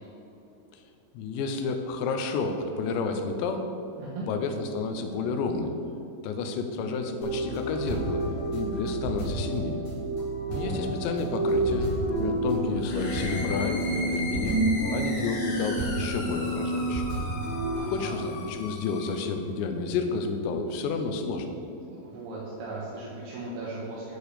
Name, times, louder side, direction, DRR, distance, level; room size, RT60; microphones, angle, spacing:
voice 1, 1.1-3.7 4.3-5.7 6.2-9.8 10.5-14.6 14.9-17.0 17.9-21.5, left 4 dB, 80° left, 6 dB, 2.7 m, -30 dB
voice 2, 4.0-4.3 10.5-11.0 17.7-18.2 22.0-24.2, right 2 dB, 70° right, -6 dB, 2.8 m, -37 dB
sound 1, 7.2-17.8, right 1 dB, 40° left, 2.5 m, -29 dB
sound 2, 12.7-19.3, left 2 dB, 65° left, 1.0 m, -38 dB
10.5 x 4.7 x 6.7 m, 2.8 s
omnidirectional pair, 5.5 m